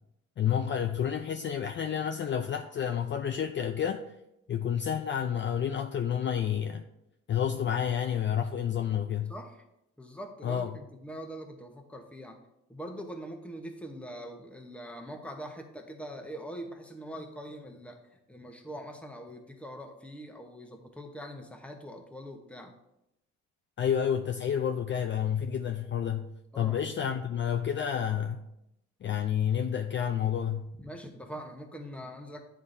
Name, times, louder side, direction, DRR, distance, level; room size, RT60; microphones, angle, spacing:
voice 1, 0.4-4.1 4.5-6.8 7.3-9.3 10.4-10.7 23.8-26.3 26.6-28.4 29.0-30.7, left 8 dB, 40° left, 6 dB, 0.4 m, -30 dB
voice 2, 10.0-12.4 12.7-18.0 18.3-22.7 26.5-26.8 30.8-32.4, equal, 5° left, 3 dB, 0.9 m, -43 dB
9.8 x 3.7 x 2.6 m, 0.84 s
cardioid pair, 90°, 30 cm